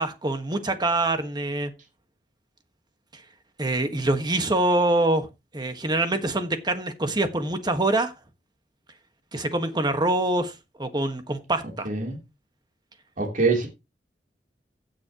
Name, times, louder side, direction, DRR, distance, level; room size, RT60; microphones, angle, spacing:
voice 1, 0.0-1.7 3.1-3.2 3.6-5.3 5.5-8.1 9.3-10.5 10.8-11.9, right 2 dB, 25° right, 1.5 m, -25 dB
voice 2, 13.2-13.7, right 4 dB, 50° right, 3.2 m, -23 dB
16.0 x 7.5 x 3.0 m
head